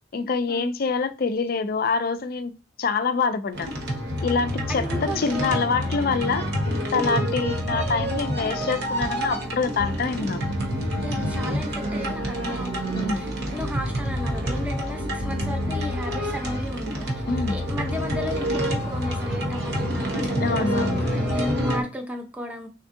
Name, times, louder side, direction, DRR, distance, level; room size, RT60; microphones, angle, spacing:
voice 1, 0.1-2.5 2.8-3.7 4.2-10.4 12.9-13.3 17.3-17.6 20.4-21.0, left 4 dB, 50° left, 0.4 m, -26 dB
sound 1, 3.5-21.8, equal, 55° right, 1.0 m, -27 dB
voice 2, 4.7-5.6 7.0-7.5 11.0-17.1 17.5-22.7, equal, 5° right, 0.7 m, -35 dB
4.2 x 3.5 x 2.6 m
head